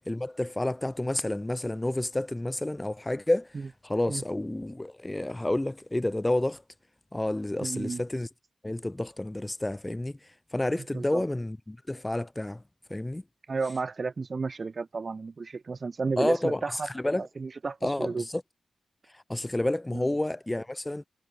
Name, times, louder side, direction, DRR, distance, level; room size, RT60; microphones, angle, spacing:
voice 1, 0.0-6.6 7.1-8.3 8.6-12.6 12.9-13.2 16.2-17.3 17.8-18.4 19.1-21.0, left 1 dB, 20° left, 7.8 m, -30 dB
voice 2, 7.6-8.0 10.9-11.2 13.5-16.9 17.2-18.2 19.9-20.1, right 4 dB, 55° right, 7.5 m, -32 dB
supercardioid pair, 40°, 0 cm